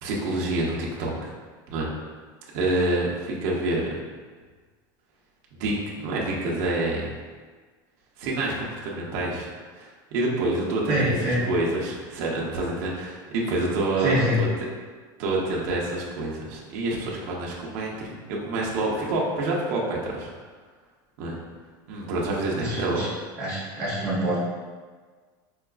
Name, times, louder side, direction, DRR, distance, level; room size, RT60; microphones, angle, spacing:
voice 1, 0.0-1.1 1.7-1.9 2.5-3.9 5.5-7.1 8.2-9.5 9.8-14.5 15.2-20.3 21.2-21.4 21.9-23.0, right 2 dB, 65° right, -3 dB, 0.7 m, -27 dB
voice 2, 10.9-11.4 14.0-14.4 22.5-23.1 23.4-24.4, equal, 20° right, -12 dB, 0.8 m, -25 dB
4.6 x 2.4 x 2.3 m, 1.5 s
supercardioid pair, 155°, 10 cm